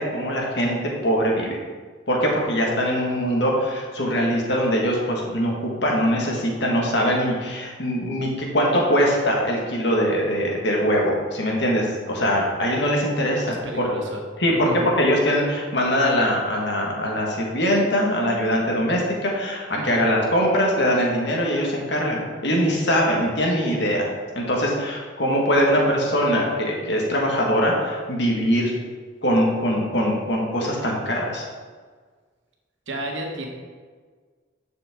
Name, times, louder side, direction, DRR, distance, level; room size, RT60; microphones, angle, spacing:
voice 1, 0.0-1.6 2.1-13.9 14.4-24.1 24.4-28.7 29.2-31.4, equal, 60° left, -2 dB, 1.9 m, -22 dB
voice 2, 13.5-14.2 14.5-14.8 19.7-20.0 32.9-33.5, right 1 dB, 70° right, 0 dB, 1.7 m, -32 dB
10.5 x 6.7 x 3.8 m, 1.5 s
head